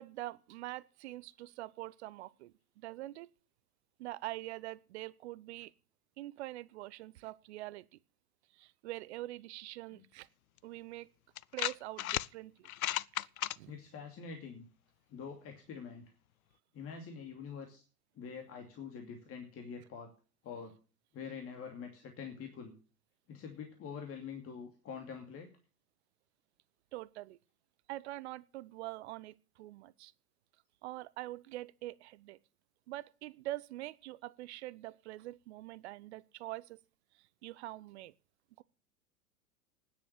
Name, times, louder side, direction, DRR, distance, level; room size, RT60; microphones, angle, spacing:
voice 1, 0.0-3.3 4.0-5.7 6.2-8.0 8.5-10.3 10.6-11.1 11.5-12.7 13.5-13.7 26.9-27.4 27.9-30.1 30.8-32.4 32.9-36.8 37.4-38.1 38.6-38.7, right 17 dB, 45° right, 19 dB, 0.8 m, -44 dB
sound 1, 10.6-10.7 11.4-12.3 12.6-13.6, left 14 dB, 65° left, 0.6 m, -34 dB
voice 2, 13.7-14.7 15.1-16.1 16.7-17.8 18.2-20.1 20.4-20.7 21.1-22.7 23.3-25.5, left 6 dB, 30° left, 4 dB, 2.6 m, -45 dB
9.9 x 8.5 x 9.6 m, 0.36 s
figure-of-eight pair, 95°, 46 cm